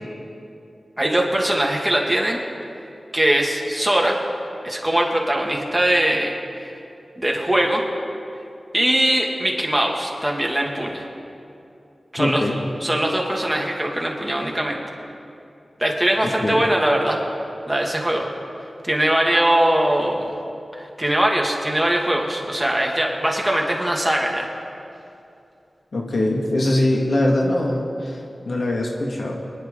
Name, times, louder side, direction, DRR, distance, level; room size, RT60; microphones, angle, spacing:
voice 1, 1.0-2.4 3.1-4.2 4.6-6.7 7.2-7.8 8.7-11.1 12.1-12.4 12.8-14.8 15.8-17.2 17.7-18.3 18.8-20.3 20.7-24.5, right 1 dB, 10° right, -1 dB, 2.1 m, -21 dB
voice 2, 12.2-12.6 16.2-16.6 25.9-29.3, left 1 dB, 70° left, 0 dB, 1.8 m, -22 dB
24.0 x 11.0 x 3.8 m, 2.7 s
wide cardioid pair, 60°, 0 cm